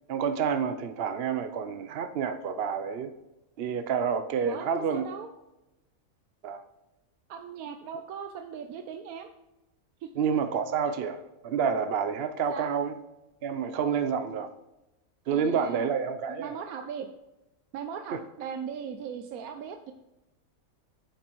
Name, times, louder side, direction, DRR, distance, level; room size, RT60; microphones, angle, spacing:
voice 1, 0.1-3.1 3.6-5.0 6.4-6.6 10.2-13.0 13.4-14.5 15.3-16.5, right 6 dB, 60° right, 9 dB, 0.7 m, -29 dB
voice 2, 4.4-5.3 7.3-9.3 10.0-10.1 12.5-12.7 15.3-15.9 16.3-17.1 17.7-19.9, right 7 dB, 80° right, 7 dB, 1.1 m, -39 dB
9.5 x 7.3 x 3.0 m, 1.0 s
omnidirectional pair, 1.5 m